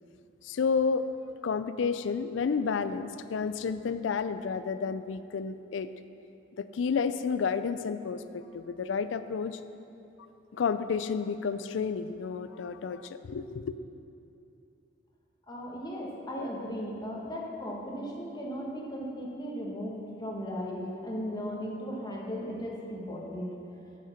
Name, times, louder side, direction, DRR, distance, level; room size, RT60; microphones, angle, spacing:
voice 1, 0.4-1.1 1.4-5.9 6.6-9.6 10.5-13.8, left 5 dB, 90° left, 12 dB, 0.4 m, -31 dB
voice 2, 15.5-23.5, equal, 25° left, -3 dB, 1.4 m, -36 dB
8.3 x 6.6 x 5.8 m, 2.7 s
head